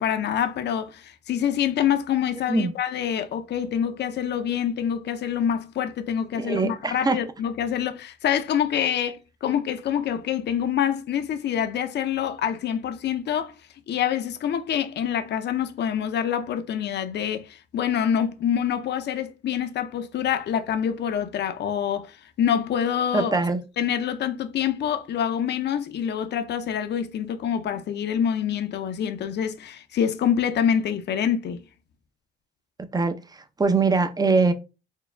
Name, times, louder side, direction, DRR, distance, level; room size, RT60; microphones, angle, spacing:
voice 1, 0.0-13.5 13.9-23.4 23.8-31.6, left 9 dB, 60° left, 0.6 m, -26 dB
voice 2, 6.4-7.2 23.1-23.6 32.9-33.2 33.6-34.5, right 3 dB, 20° right, 0.6 m, -22 dB
4.5 x 2.3 x 3.3 m
cardioid pair, 90°, 20 cm